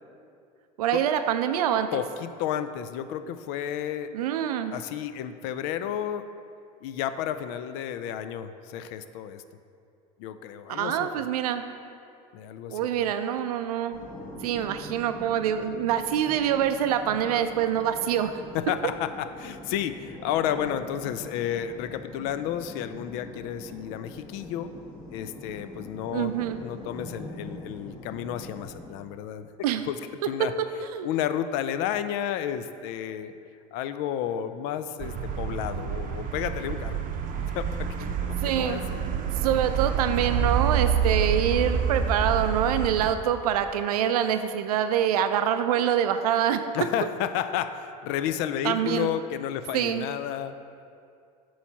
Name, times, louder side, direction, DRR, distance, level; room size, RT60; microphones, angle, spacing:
voice 1, 0.8-2.0 4.1-4.7 10.7-11.6 12.7-14.0 14.4-18.4 26.1-26.6 29.6-29.8 30.8-31.1 38.4-38.8 39.4-46.6 48.6-49.1 49.7-50.1, right 9 dB, 90° right, 9 dB, 0.4 m, -25 dB
voice 2, 1.9-4.1 4.7-6.3 6.8-9.4 10.2-11.3 12.3-13.1 18.5-24.7 25.1-29.5 29.9-30.0 30.3-30.5 31.0-33.3 33.7-37.0 37.5-39.1 46.7-50.6, left 10 dB, 70° left, 11 dB, 0.4 m, -32 dB
sound 1, 13.9-28.9, left 1 dB, 25° left, 1.3 m, -43 dB
sound 2, 35.0-43.1, right 7 dB, 45° right, 0.7 m, -28 dB
8.1 x 3.1 x 5.7 m, 2.4 s
hypercardioid pair, 90°, 19 cm